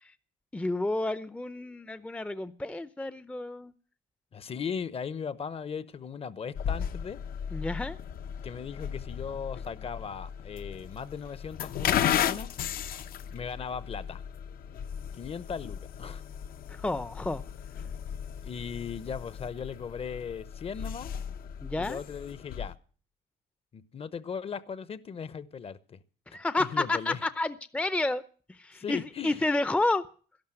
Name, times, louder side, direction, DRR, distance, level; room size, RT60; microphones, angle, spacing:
voice 1, 0.5-3.7 7.5-8.0 16.7-17.4 21.6-22.0 26.3-28.2 28.5-30.0, left 2 dB, 5° left, 0.6 m, -30 dB
voice 2, 4.3-7.2 8.4-12.5 13.3-14.2 15.1-16.2 18.4-21.1 21.8-22.7 23.7-26.0 26.7-27.2 28.7-29.4, left 6 dB, 35° left, 0.9 m, -38 dB
sound 1, 6.5-22.7, left 9 dB, 60° left, 0.9 m, -35 dB
12.5 x 11.5 x 7.7 m
cardioid pair, 110°, 17 cm